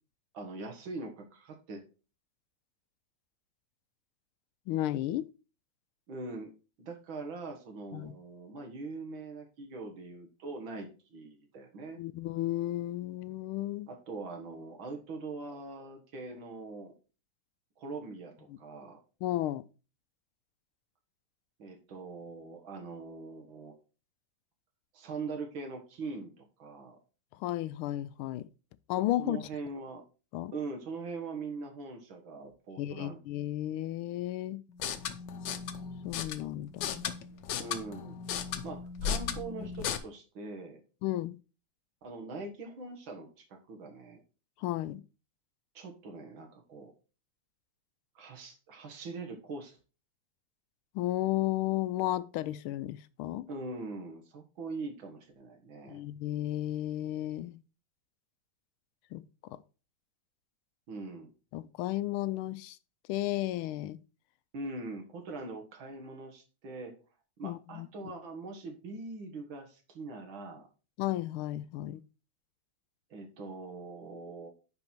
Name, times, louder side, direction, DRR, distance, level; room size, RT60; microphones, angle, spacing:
voice 1, 0.3-1.8 6.1-6.5 6.8-12.0 13.9-16.9 17.8-19.0 21.6-23.7 24.9-27.0 29.2-30.0 30.5-33.2 37.6-38.2 38.6-40.8 42.0-44.2 45.7-46.9 48.2-49.8 53.5-56.0 60.9-61.3 64.5-66.9 67.4-70.7 73.1-74.5, right 3 dB, 65° right, 2.2 m, -42 dB
voice 2, 4.7-5.3 7.9-8.1 12.0-13.9 18.5-18.6 19.2-19.6 27.4-28.5 28.9-29.4 30.3-30.5 32.8-34.6 36.0-37.1 41.0-41.4 44.6-45.0 50.9-53.5 55.9-57.6 59.1-59.2 61.5-62.8 63.1-64.0 67.4-67.9 71.0-72.0, left 14 dB, 85° left, 1.4 m, -33 dB
sound 1, 34.7-40.0, left 8 dB, 65° left, 1.2 m, -36 dB
9.8 x 4.4 x 4.4 m
omnidirectional pair, 2.3 m